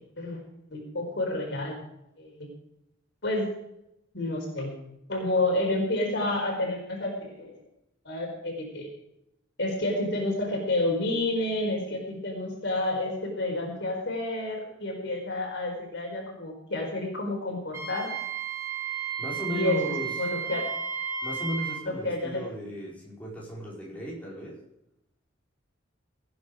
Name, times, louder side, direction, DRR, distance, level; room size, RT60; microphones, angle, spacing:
voice 1, 0.7-1.7 2.2-2.5 3.2-3.5 4.1-4.7 5.1-7.6 8.0-8.9 9.6-18.1 19.5-19.8 20.2-20.6 22.0-22.4, left 2 dB, 65° left, 1 dB, 4.7 m, -29 dB
Wind instrument woodwind instrument, 17.7-21.8, right 7 dB, 15° right, 2.6 m, -33 dB
voice 2, 19.2-20.1 21.2-24.5, equal, 10° left, -5 dB, 5.0 m, -35 dB
17.5 x 9.6 x 5.1 m, 0.82 s
head